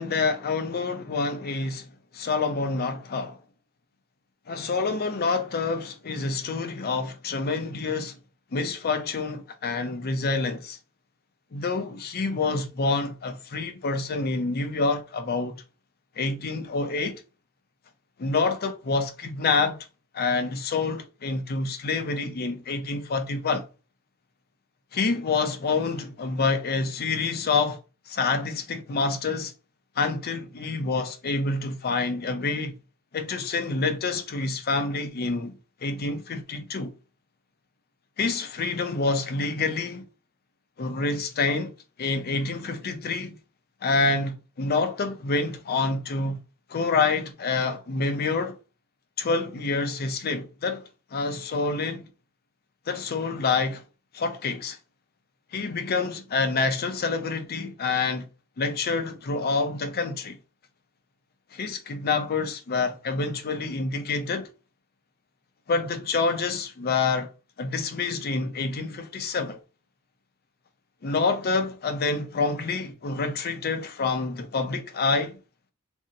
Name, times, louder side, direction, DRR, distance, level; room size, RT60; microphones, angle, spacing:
voice 1, 0.0-1.9 2.1-3.4 4.5-8.2 8.5-10.8 11.5-15.6 16.2-17.2 18.2-19.8 20.1-23.6 24.9-27.8 28.1-29.5 30.0-32.7 33.1-35.5 35.8-36.9 38.2-40.0 40.8-41.7 42.0-43.3 43.8-46.4 46.7-48.6 49.2-50.8 51.1-52.0 52.9-53.8 54.1-54.8 55.5-58.3 58.6-60.4 61.5-64.5 65.7-67.3 67.6-69.6 71.0-75.4, left 4 dB, 45° left, 0.5 m, -27 dB
2.7 x 2.0 x 3.7 m
head